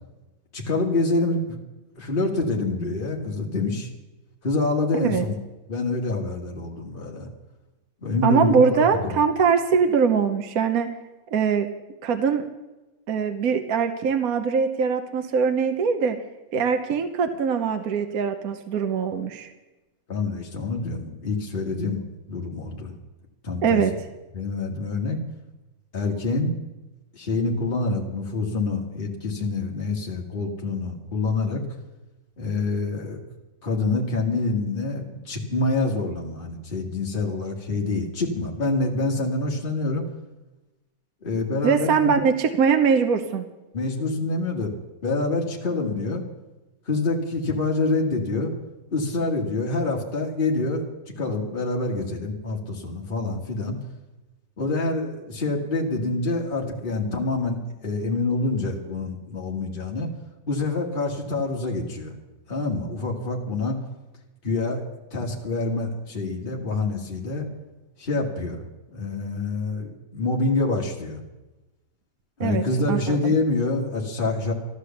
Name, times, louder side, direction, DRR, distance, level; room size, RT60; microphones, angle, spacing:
voice 1, 0.5-1.6 2.0-3.9 4.4-5.4 5.7-7.3 8.0-9.1 20.1-22.0 22.3-22.9 23.4-23.8 24.3-25.2 25.9-26.6 27.1-31.6 32.4-33.2 33.6-40.1 41.2-42.2 43.7-44.8 45.0-46.2 46.9-48.5 48.9-53.8 54.6-60.1 60.5-62.1 62.5-63.8 64.4-64.9 65.1-67.5 68.0-68.6 68.9-71.2 72.4-74.5, left 3 dB, 30° left, -1 dB, 2.0 m, -26 dB
voice 2, 8.2-10.9 11.3-11.7 12.0-12.4 13.1-16.2 16.5-19.5 23.6-23.9 41.6-43.4 72.4-73.3, right 6 dB, 60° right, 7 dB, 1.2 m, -22 dB
14.0 x 11.5 x 7.1 m, 1.1 s
omnidirectional pair, 1.9 m